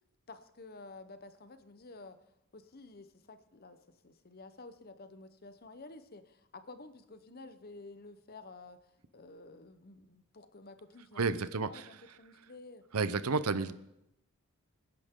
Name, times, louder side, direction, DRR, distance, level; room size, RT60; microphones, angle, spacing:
voice 1, 0.3-2.2 2.5-3.8 4.0-8.8 9.1-12.8, left 3 dB, 45° left, 10 dB, 0.9 m, -51 dB
voice 2, 11.2-11.9 12.9-13.7, right 4 dB, 85° right, 14 dB, 0.7 m, -31 dB
25.5 x 10.0 x 3.8 m, 0.85 s
head